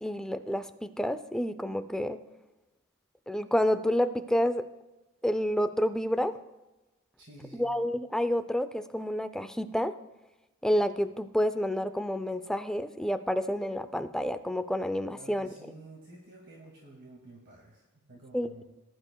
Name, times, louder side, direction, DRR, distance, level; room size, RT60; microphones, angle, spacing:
voice 1, 0.0-2.2 3.3-4.7 5.2-6.4 7.5-9.9 10.6-15.5 18.3-18.6, equal, 5° left, 10 dB, 0.4 m, -29 dB
voice 2, 7.2-7.7 15.1-18.6, right 2 dB, 50° right, -2 dB, 2.1 m, -51 dB
20.0 x 11.5 x 2.3 m, 1.1 s
head